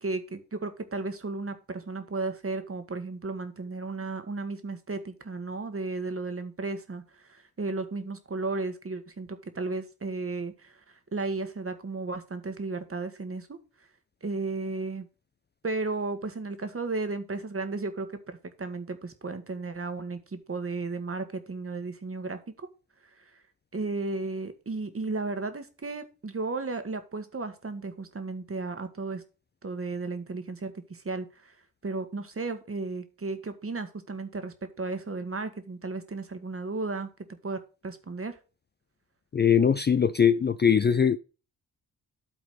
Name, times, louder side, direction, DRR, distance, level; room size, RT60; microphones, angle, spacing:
voice 1, 0.0-10.8 11.1-13.6 14.2-15.1 15.6-22.7 23.2-23.4 23.7-29.2 29.6-31.5 31.8-37.1 37.4-38.4, right 3 dB, 35° right, 1.5 m, -34 dB
voice 2, 39.3-41.2, left 7 dB, 25° left, 0.4 m, -21 dB
11.0 x 4.0 x 5.1 m
supercardioid pair, 45°, 39 cm